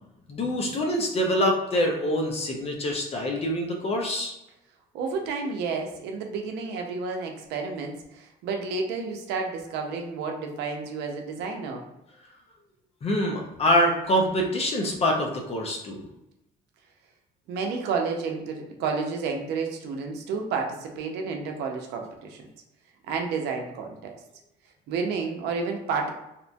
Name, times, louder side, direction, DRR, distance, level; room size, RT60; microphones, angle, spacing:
voice 1, 0.3-4.3 13.0-16.0, equal, 35° left, 1 dB, 0.6 m, -25 dB
voice 2, 4.9-11.8 17.5-22.5 23.1-24.1 24.9-26.1, right 4 dB, 80° right, 3 dB, 0.6 m, -31 dB
2.9 x 2.5 x 2.2 m, 0.89 s
cardioid pair, 110°, 17 cm